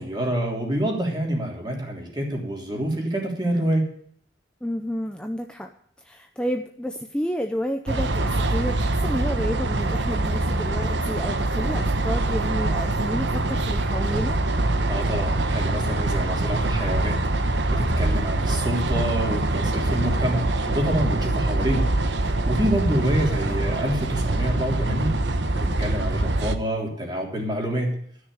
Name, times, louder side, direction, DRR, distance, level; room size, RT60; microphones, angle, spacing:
voice 1, 0.0-3.8 14.9-17.2 17.5-21.9 22.2-25.2 25.5-28.0, right 1 dB, 25° right, -1 dB, 3.3 m, -27 dB
voice 2, 4.6-5.7 6.0-14.4, equal, 5° left, 5 dB, 0.6 m, -30 dB
sound 1, 7.9-26.6, right 2 dB, 85° right, 1.0 m, -24 dB
13.5 x 6.5 x 9.7 m, 0.64 s
head